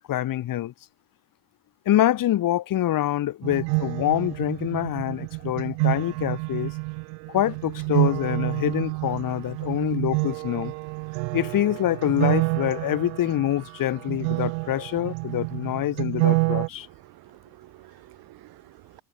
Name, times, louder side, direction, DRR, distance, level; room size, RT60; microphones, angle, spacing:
voice 1, 0.1-0.7 1.9-6.7 7.3-10.7 11.3-16.9, left 13 dB, 45° left, 5.4 m, -25 dB
sound 1, 3.4-16.7, right 40 dB or more, 85° right, 1.2 m, -28 dB
voice 2, 10.9-11.3 16.8-19.0, right 17 dB, 55° right, 1.7 m, -51 dB
cardioid pair, 140°, 44 cm